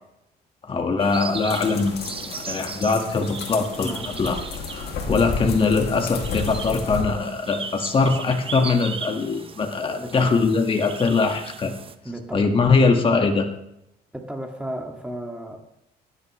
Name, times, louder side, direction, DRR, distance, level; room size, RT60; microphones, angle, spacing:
voice 1, 0.6-2.0 2.4-4.4 4.7-11.7 12.3-13.5, left 4 dB, 30° left, 4 dB, 1.7 m, -22 dB
sound 1, 1.0-11.9, right 5 dB, 30° right, 1.0 m, -37 dB
sound 2, 1.5-7.0, left 4 dB, 70° left, 2.4 m, -32 dB
voice 2, 10.0-10.4 12.0-12.5 14.1-15.6, right 1 dB, 5° right, 2 dB, 2.0 m, -34 dB
19.0 x 11.0 x 3.2 m, 0.81 s
cardioid pair, 110°, 17 cm